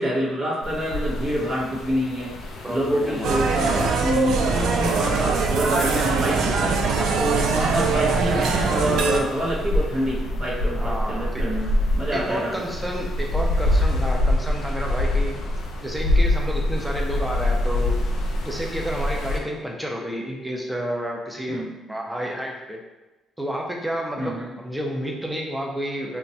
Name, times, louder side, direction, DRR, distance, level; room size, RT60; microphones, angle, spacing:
voice 1, 0.0-2.3 2.7-6.8 7.2-12.6 21.5-21.7 24.2-24.5, equal, 50° right, -7 dB, 0.7 m, -26 dB
sound 1, 0.6-19.4, left 1 dB, 75° left, 0.5 m, -26 dB
voice 2, 2.6-3.5 6.7-7.4 10.7-11.4 12.1-15.4 15.8-18.0 18.4-21.6 21.9-22.8 23.4-26.2, equal, 5° right, 0 dB, 0.5 m, -30 dB
sound 2, 3.2-9.2, right 5 dB, 80° right, 0.3 m, -22 dB
3.0 x 2.2 x 2.7 m, 1.1 s
cardioid pair, 105°, 0 cm